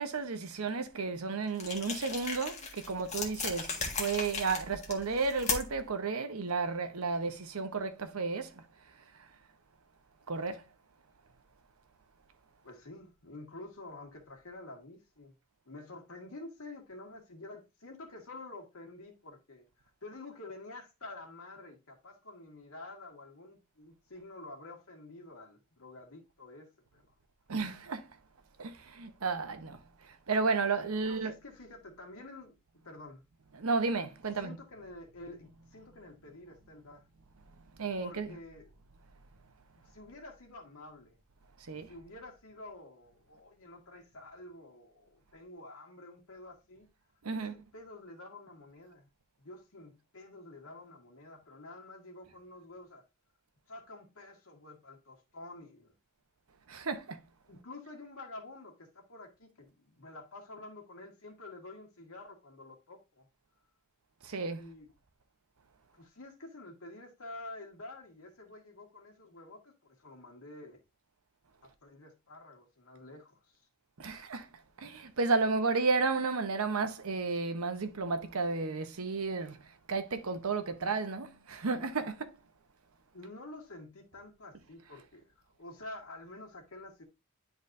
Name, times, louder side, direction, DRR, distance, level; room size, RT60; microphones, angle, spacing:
voice 1, 0.0-8.6 9.2-9.3 10.3-10.6 27.5-28.1 28.6-31.3 33.6-34.6 37.8-38.3 41.6-41.9 47.2-47.5 56.7-57.2 64.2-64.7 74.0-74.5 74.8-82.3, right 4 dB, 85° right, 0.9 m, -33 dB
sound 1, 1.6-5.9, left 4 dB, 30° left, 1.5 m, -37 dB
voice 2, 12.6-15.3 15.7-19.7 20.0-27.1 31.0-32.6 32.8-33.3 34.4-37.1 38.0-38.8 39.8-41.2 41.9-46.9 47.3-49.1 49.4-53.0 53.7-55.9 57.5-63.3 64.5-64.9 65.9-70.8 71.6-73.7 83.1-87.0, left 2 dB, 85° left, 1.9 m, -49 dB
10.5 x 4.0 x 2.6 m
head